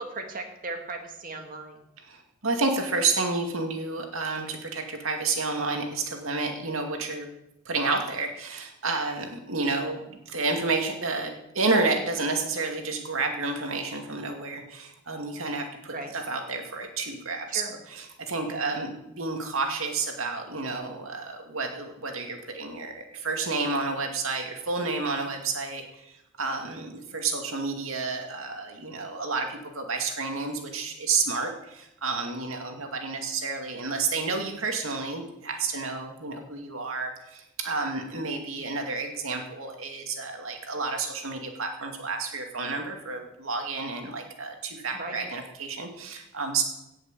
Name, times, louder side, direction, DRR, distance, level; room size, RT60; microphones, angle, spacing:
voice 1, 0.0-1.9 15.9-16.1 17.5-17.8 18.5-18.8 44.9-45.2, right 2 dB, 45° right, 4 dB, 1.9 m, -37 dB
voice 2, 2.1-7.3 7.7-17.6 18.2-46.6, right 3 dB, 90° right, 3 dB, 2.3 m, -30 dB
17.0 x 6.5 x 7.4 m, 0.88 s
head